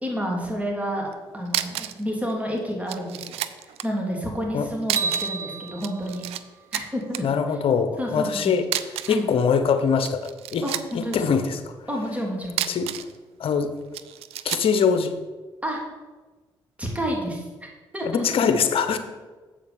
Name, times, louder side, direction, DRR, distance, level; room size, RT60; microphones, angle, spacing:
voice 1, 0.0-1.1 1.3-6.2 6.7-7.2 8.0-8.5 9.1-9.3 10.6-11.4 11.9-12.6 15.6-15.8 16.8-17.4 17.9-18.2, equal, 15° right, 0 dB, 2.9 m, -29 dB
sound 1, 1.1-1.2 1.5-2.0 2.3-2.4 2.9-3.9 4.8-5.4 5.7-6.4 6.7-7.2 8.6-9.2 9.9-11.2 12.4-13.2 13.9-14.7, right 13 dB, 75° right, 0.4 m, -30 dB
sound 2, 5.0-7.2, right 4 dB, 30° right, 0.9 m, -32 dB
voice 2, 7.2-10.6 10.9-11.6 12.7-12.9 13.4-13.7 14.4-15.1 18.0-19.0, left 6 dB, 65° left, 9 dB, 0.9 m, -23 dB
7.7 x 5.1 x 6.8 m, 1.3 s
supercardioid pair, 50°, 10 cm